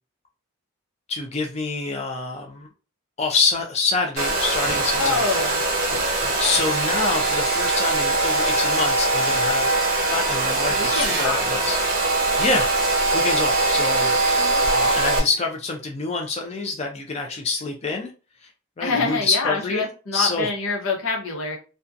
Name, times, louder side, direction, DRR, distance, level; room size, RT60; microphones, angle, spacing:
voice 1, 1.1-2.7 3.2-5.4 6.2-9.8 10.1-11.8 12.0-14.2 14.7-18.1 18.4-18.5 18.8-19.8 20.1-20.5, left 3 dB, 30° left, 1 dB, 0.3 m, -26 dB
Domestic sounds home sounds, 4.2-15.2, right 2 dB, 40° right, 0.6 m, -22 dB
voice 2, 4.9-5.6 10.7-11.4 14.4-14.6 18.8-21.6, left 3 dB, 85° left, 0 dB, 0.8 m, -26 dB
2.6 x 2.2 x 2.4 m, 0.34 s
head